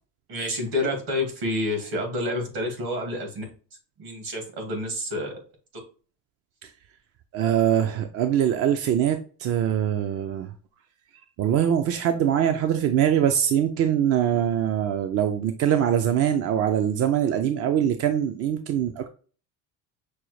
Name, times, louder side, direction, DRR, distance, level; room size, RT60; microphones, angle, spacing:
voice 1, 0.3-3.4 4.0-5.3, left 1 dB, 60° right, 3 dB, 1.8 m, -28 dB
voice 2, 7.3-10.5 11.4-19.1, right 9 dB, 40° right, 7 dB, 0.4 m, -23 dB
5.9 x 2.0 x 3.1 m, 0.38 s
cardioid pair, 125°, 38 cm